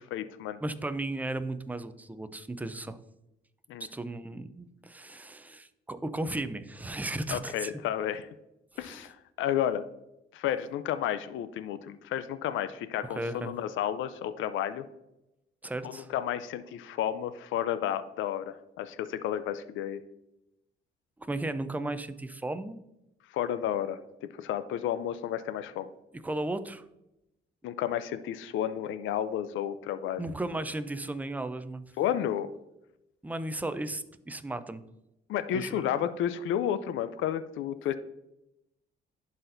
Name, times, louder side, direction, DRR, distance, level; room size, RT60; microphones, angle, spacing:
voice 1, 0.1-0.6 3.7-3.9 7.3-8.3 8.8-9.8 10.3-14.8 15.8-20.0 23.3-24.0 24.4-25.9 27.6-30.2 32.0-32.5 35.3-37.9, left 10 dB, 80° left, 12 dB, 0.5 m, -31 dB
voice 2, 0.6-3.0 3.8-7.7 8.7-9.0 13.1-13.5 15.6-16.1 21.3-22.8 26.2-26.8 30.2-31.8 33.2-34.8 35.5-35.8, right 2 dB, 10° right, 11 dB, 0.5 m, -35 dB
11.0 x 4.2 x 2.6 m, 0.89 s
cardioid pair, 90°, 20 cm